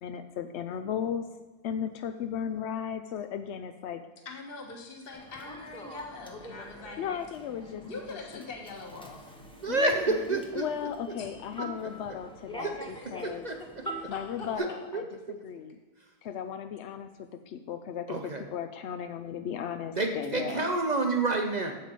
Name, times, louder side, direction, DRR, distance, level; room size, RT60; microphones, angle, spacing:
voice 1, 0.0-1.3 1.6-4.0 7.0-7.8 8.1-8.2 9.7-13.4 14.1-15.8 16.2-20.6, left 8 dB, 70° left, 8 dB, 0.6 m, -36 dB
voice 2, 4.2-7.1 7.7-9.3 11.1-11.3 12.9-13.1 13.8-14.5, left 3 dB, 40° left, 1 dB, 1.5 m, -42 dB
Human voice / Subway metro underground, 5.1-14.6, right 1 dB, 5° left, 0.7 m, -45 dB
voice 3, 9.6-10.6 12.6-12.7 13.4-13.6 14.6-14.7 14.9-15.0 18.1-18.4 20.0-21.8, right 2 dB, 45° right, 4 dB, 0.5 m, -28 dB
8.2 x 7.8 x 5.3 m, 1.2 s
omnidirectional pair, 1.7 m